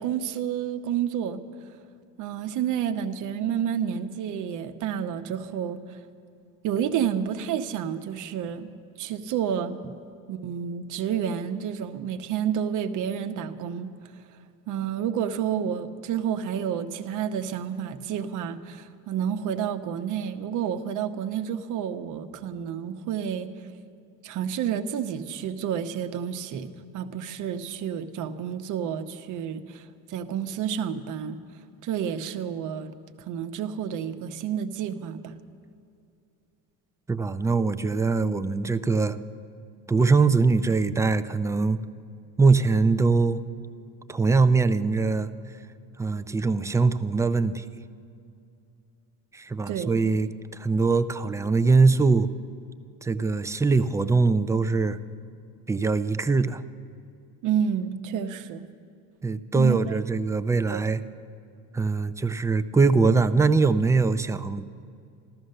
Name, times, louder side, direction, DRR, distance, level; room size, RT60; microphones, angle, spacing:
voice 1, 0.0-1.4 2.2-5.8 6.6-8.7 9.0-9.8 10.3-13.9 14.7-23.5 24.2-31.4 31.8-32.9 33.3-35.4 49.7-50.0 57.4-58.7 59.5-60.0 60.7-60.8, right 8 dB, 60° right, 9 dB, 0.9 m, -30 dB
voice 2, 37.1-39.2 39.9-41.8 42.4-43.4 44.1-45.3 46.0-47.7 49.3-52.3 53.0-55.0 55.7-56.6 59.2-61.0 61.7-64.6, right 4 dB, 10° right, 11 dB, 0.4 m, -22 dB
14.5 x 13.0 x 6.7 m, 2.5 s
cardioid pair, 120°, 35 cm